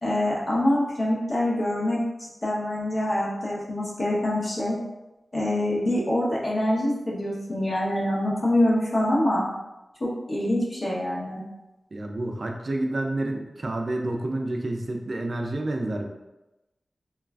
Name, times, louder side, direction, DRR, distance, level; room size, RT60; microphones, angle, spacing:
voice 1, 0.0-4.8 5.3-9.4 10.0-11.4, left 1 dB, 50° left, -5 dB, 0.8 m, -25 dB
voice 2, 11.9-16.1, right 2 dB, 50° right, 2 dB, 0.3 m, -29 dB
3.1 x 2.3 x 2.3 m, 1.0 s
wide cardioid pair, 105°, 0 cm